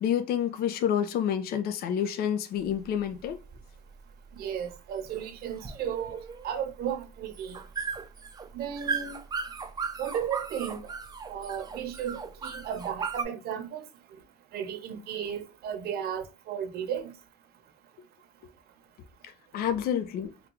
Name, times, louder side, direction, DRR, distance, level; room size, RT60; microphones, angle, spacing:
voice 1, 0.0-3.4 19.2-20.3, left 9 dB, 65° left, 0.5 m, -29 dB
sound 1, 2.6-13.2, right 5 dB, 25° right, 0.5 m, -37 dB
voice 2, 4.3-7.6 8.5-9.2 10.0-10.9 11.3-13.9 14.5-17.1, right 9 dB, 70° right, 0.8 m, -34 dB
3.5 x 2.3 x 2.9 m
cardioid pair, 110°, 17 cm